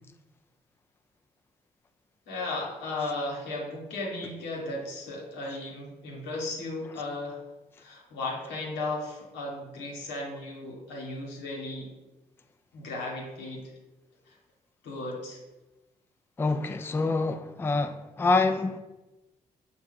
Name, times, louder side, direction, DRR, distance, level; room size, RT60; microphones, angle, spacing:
voice 1, 2.3-7.4 7.8-11.9 12.7-13.7 14.3-14.4 14.8-15.4, left 2 dB, 85° left, 1.0 m, -35 dB
voice 2, 16.4-18.8, left 3 dB, 15° left, 0.3 m, -26 dB
5.8 x 2.3 x 3.5 m
hypercardioid pair, 45°, 18 cm